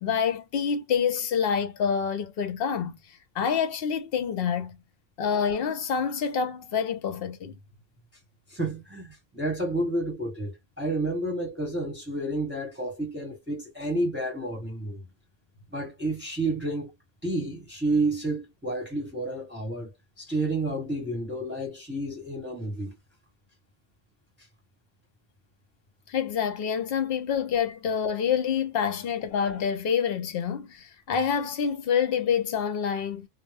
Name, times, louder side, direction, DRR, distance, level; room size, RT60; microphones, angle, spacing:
voice 1, 0.0-4.8 5.2-7.6 26.1-33.3, left 7 dB, 70° left, 0.8 m, -27 dB
voice 2, 8.5-15.0 15.7-16.9 17.2-19.9 20.2-23.0, right 2 dB, 10° right, 1.1 m, -30 dB
2.1 x 2.0 x 3.3 m
omnidirectional pair, 1.0 m